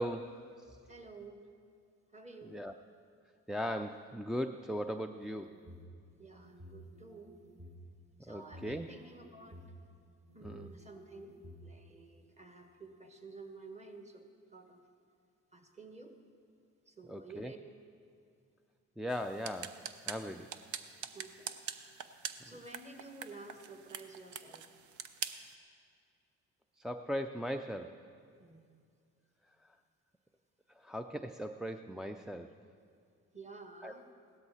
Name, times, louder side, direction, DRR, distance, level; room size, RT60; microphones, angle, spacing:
voice 1, 0.0-0.8 2.4-2.7 3.5-5.5 8.3-8.9 10.4-10.7 17.1-17.5 19.0-20.5 26.8-28.0 29.6-29.7 30.7-32.5 33.8-33.9, equal, ahead, 5 dB, 0.3 m, -39 dB
voice 2, 0.9-1.5 2.1-2.6 6.2-7.4 8.2-9.7 10.3-14.2 14.5-14.8 15.5-16.2 16.9-17.6 21.1-21.5 22.4-24.6 28.4-28.7 33.3-34.1, right 3 dB, 20° right, 5 dB, 1.5 m, -51 dB
sound 1, 5.2-5.9 6.4-7.8 8.4-9.7 10.3-11.6, equal, 55° right, 3.1 m, -53 dB
sound 2, 19.1-25.5, right 8 dB, 75° right, 0.7 m, -45 dB
16.5 x 13.0 x 4.2 m, 2.3 s
cardioid pair, 90°, 30 cm